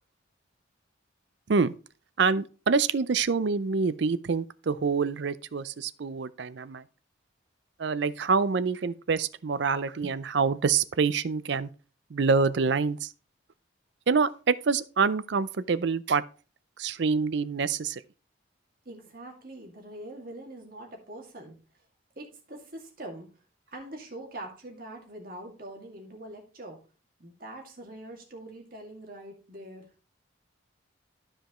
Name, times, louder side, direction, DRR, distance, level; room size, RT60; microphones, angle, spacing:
voice 1, 2.2-6.8 7.8-11.7 12.1-13.1 14.1-16.2 16.8-18.0, right 5 dB, 65° right, 0.5 m, -26 dB
voice 2, 18.9-21.9 22.2-23.4 23.7-26.8 27.2-29.9, right 1 dB, 50° right, 2.1 m, -43 dB
12.5 x 5.0 x 3.0 m
head